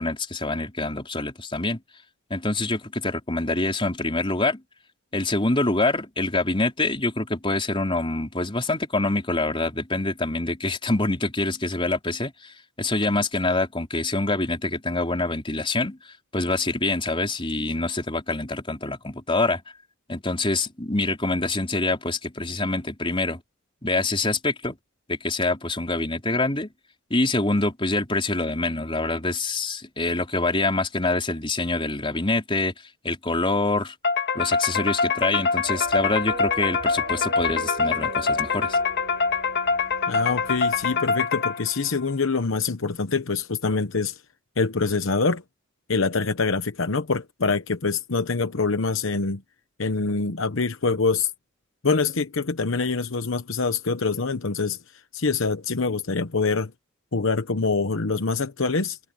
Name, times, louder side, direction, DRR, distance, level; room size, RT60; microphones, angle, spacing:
voice 1, 0.0-1.8 2.3-4.6 5.1-16.0 16.3-19.6 20.1-23.4 23.8-24.8 25.1-26.7 27.1-32.7 33.0-33.9 34.3-38.8, left 2 dB, 25° left, 4.4 m, -25 dB
sound 1, 34.0-41.9, left 5 dB, 55° left, 1.8 m, -24 dB
sound 2, 35.6-41.0, right 2 dB, 45° right, 5.1 m, -40 dB
voice 2, 40.1-44.2 44.6-45.4 45.9-49.4 49.8-51.3 51.8-54.8 55.1-56.7 57.1-59.0, left 4 dB, 70° left, 1.0 m, -25 dB
head